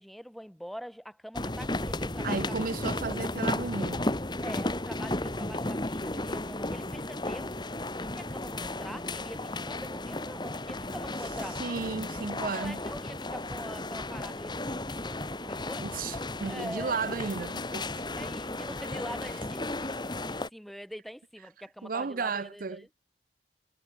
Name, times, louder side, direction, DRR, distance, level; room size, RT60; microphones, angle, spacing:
voice 1, 0.0-2.8 4.4-7.7 8.0-11.6 12.4-15.9 16.4-17.3 18.2-22.9, equal, ahead, 1.8 m, -44 dB
sound 1, 1.3-20.5, left 2 dB, 25° left, 1.9 m, -34 dB
voice 2, 2.2-4.1 11.6-12.8 15.8-18.0 21.8-22.8, right 4 dB, 50° right, 0.5 m, -34 dB
head